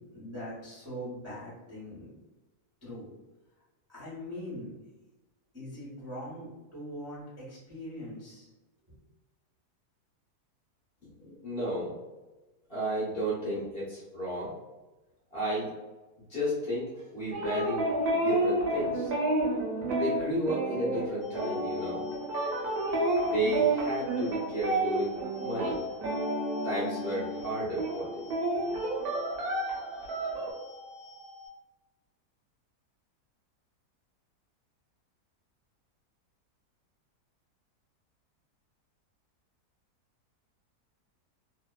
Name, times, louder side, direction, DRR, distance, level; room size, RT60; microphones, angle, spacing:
voice 1, 0.1-2.1 2.8-3.1 3.9-4.8 5.5-8.5 8.9-9.0, equal, 15° right, -10 dB, 0.5 m, -41 dB
voice 2, 11.2-12.0 12.7-14.5 15.3-15.7 16.3-19.1 19.9-22.0 23.2-25.1 25.4-25.8 26.6-28.3, equal, 45° left, -9 dB, 0.8 m, -33 dB
sound 1, 17.3-27.5 27.8-30.5, right 2 dB, 80° right, 1.1 m, -30 dB
sound 2, 21.2-31.5, left 1 dB, 75° left, 0.5 m, -49 dB
2.8 x 2.0 x 2.2 m, 1.1 s
omnidirectional pair, 1.7 m